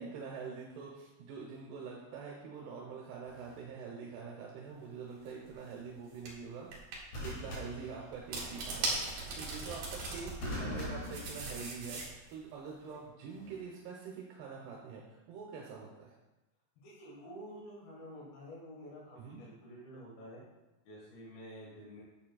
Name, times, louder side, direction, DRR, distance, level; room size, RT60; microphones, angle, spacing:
voice 1, 0.0-6.7 7.2-16.1 19.1-19.4, right 5 dB, 80° right, -2 dB, 3.0 m, -45 dB
sound 1, 3.3-3.6 7.1-8.6 10.4-12.1 13.3-13.6, left 1 dB, 50° left, 3.4 m, -42 dB
sound 2, 5.3-5.5 6.2-6.3 6.7-7.0 8.1-10.3 10.8-12.3, right 3 dB, 60° right, 3.1 m, -38 dB
voice 2, 16.8-20.5 20.9-22.0, equal, 65° left, -6 dB, 3.4 m, -49 dB
11.5 x 7.6 x 2.3 m, 1.0 s
omnidirectional pair, 4.7 m